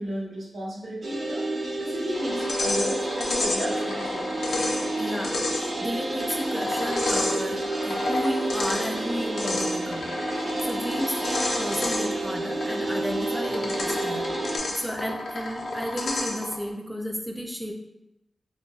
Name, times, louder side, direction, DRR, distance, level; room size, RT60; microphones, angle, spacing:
voice 1, 0.0-4.4, equal, 85° right, -5 dB, 1.0 m, -34 dB
sound 1, 1.0-14.6, right 2 dB, 65° right, 0.6 m, -30 dB
sound 2, 2.1-16.6, left 2 dB, 80° left, 0.4 m, -31 dB
voice 2, 5.0-10.1 10.6-14.3 14.8-17.7, equal, ahead, 3 dB, 0.4 m, -33 dB
3.9 x 2.2 x 2.3 m, 0.90 s
wide cardioid pair, 75°, 0 cm